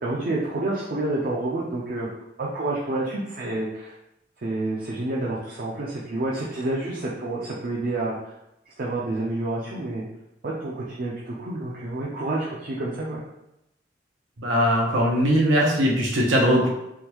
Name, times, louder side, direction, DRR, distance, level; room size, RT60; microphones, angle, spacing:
voice 1, 0.0-2.1 2.4-3.9 4.4-8.3 8.8-10.1 10.4-13.2 15.6-15.8, right 2 dB, 45° right, -5 dB, 0.5 m, -29 dB
voice 2, 14.4-16.7, equal, 85° right, -2 dB, 0.8 m, -20 dB
3.5 x 2.2 x 2.9 m, 0.85 s
head